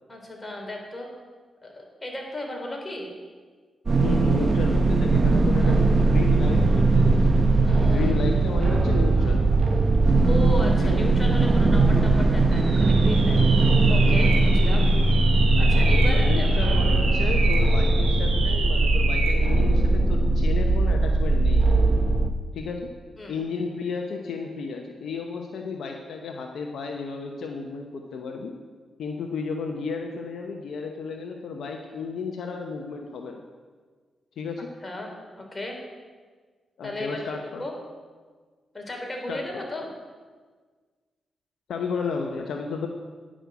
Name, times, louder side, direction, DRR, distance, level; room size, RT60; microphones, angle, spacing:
voice 1, 0.1-1.1 1.6-3.1 5.6-5.8 7.6-8.1 9.2-9.4 10.3-13.4 13.9-14.9 15.6-16.6 23.2-23.4 34.8-35.1 35.4-35.8 36.8-37.7 38.7-39.9, left 1 dB, 25° left, 1 dB, 3.5 m, -34 dB
sound 1, 3.9-22.3, right 2 dB, 45° right, 0.9 m, -20 dB
voice 2, 4.0-7.2 7.8-9.5 10.8-11.1 15.9-21.9 22.5-22.9 23.3-28.5 29.0-33.4 34.4-34.7 36.8-37.6 39.3-39.6 41.7-42.9, left 4 dB, 75° left, 3 dB, 0.8 m, -33 dB
sound 2, 12.5-19.5, right 4 dB, 80° right, 1.8 m, -31 dB
10.0 x 6.2 x 8.0 m, 1.5 s
supercardioid pair, 50°, 0 cm